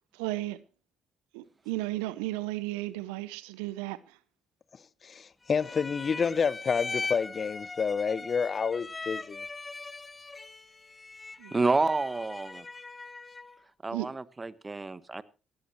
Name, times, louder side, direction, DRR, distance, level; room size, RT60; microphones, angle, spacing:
voice 1, 0.1-0.6 1.3-4.2 11.4-11.5 13.9-14.1, right 18 dB, 85° right, 0.6 m, -34 dB
voice 2, 5.0-9.4, left 6 dB, 50° left, 0.7 m, -29 dB
sound 1, 5.5-13.6, left 3 dB, 30° left, 1.0 m, -40 dB
voice 3, 11.5-12.7 13.8-15.2, right 3 dB, 30° right, 1.1 m, -29 dB
16.5 x 16.5 x 3.0 m
hypercardioid pair, 45°, 0 cm